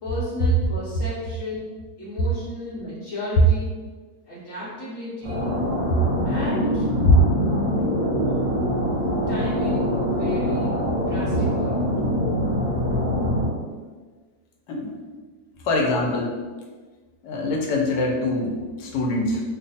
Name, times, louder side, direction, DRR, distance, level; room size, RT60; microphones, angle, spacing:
voice 1, 0.0-1.6 2.0-3.7 4.3-5.5 6.2-7.0 9.3-10.8 11.1-11.8, left 1 dB, 60° left, -9 dB, 1.1 m, -34 dB
sound 1, 5.2-13.5, equal, 30° right, 0.6 m, -24 dB
voice 2, 15.6-16.4 17.2-19.4, left 3 dB, 85° left, 0 dB, 1.3 m, -22 dB
3.1 x 2.2 x 4.0 m, 1.4 s
omnidirectional pair, 1.7 m